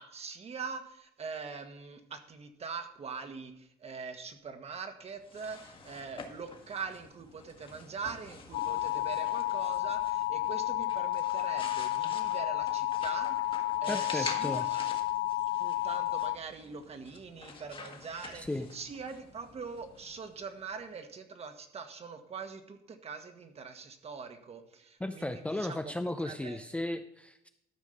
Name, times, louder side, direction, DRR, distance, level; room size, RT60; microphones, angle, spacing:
voice 1, 0.0-14.9 15.6-18.4 18.7-25.9 26.2-26.6, right 5 dB, 40° right, 7 dB, 1.5 m, -43 dB
sound 1, 5.1-20.8, left 4 dB, 30° left, 1.6 m, -47 dB
sound 2, 8.5-16.4, left 15 dB, 70° left, 0.4 m, -31 dB
voice 2, 13.9-14.7 18.3-18.7 25.0-27.5, left 1 dB, 5° left, 7 dB, 0.6 m, -35 dB
13.0 x 5.2 x 6.5 m, 0.79 s
cardioid pair, 110°, 17 cm